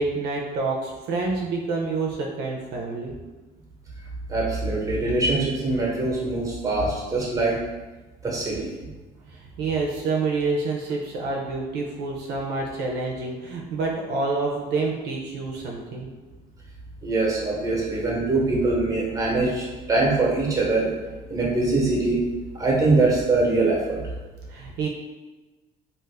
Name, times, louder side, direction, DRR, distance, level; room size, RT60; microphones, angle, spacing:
voice 1, 0.0-3.1 9.3-16.1 24.5-24.9, right 3 dB, 80° right, -1 dB, 0.5 m, -28 dB
voice 2, 4.3-7.6 8.2-8.7 17.0-20.9 21.3-22.2 22.5-24.0, right 2 dB, 20° right, -3 dB, 0.9 m, -23 dB
2.5 x 2.4 x 3.3 m, 1.2 s
cardioid pair, 110°, 17 cm